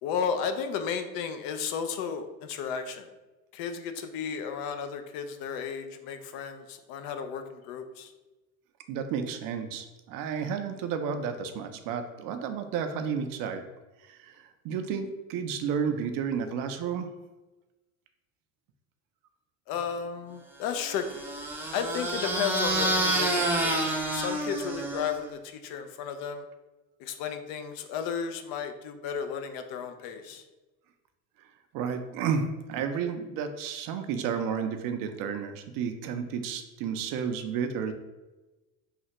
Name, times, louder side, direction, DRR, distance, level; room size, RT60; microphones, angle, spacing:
voice 1, 0.0-3.1 3.5-8.1 19.7-21.3 21.7-23.7 24.1-26.4 27.0-30.4, left 7 dB, 55° left, 7 dB, 0.5 m, -33 dB
voice 2, 8.9-13.6 14.0-14.3 14.6-17.1 31.7-37.9, right 6 dB, 55° right, 7 dB, 0.5 m, -32 dB
sound 1, 20.7-25.3, right 1 dB, 5° right, 0.5 m, -28 dB
3.2 x 2.3 x 2.9 m, 1.1 s
hypercardioid pair, 75°, 42 cm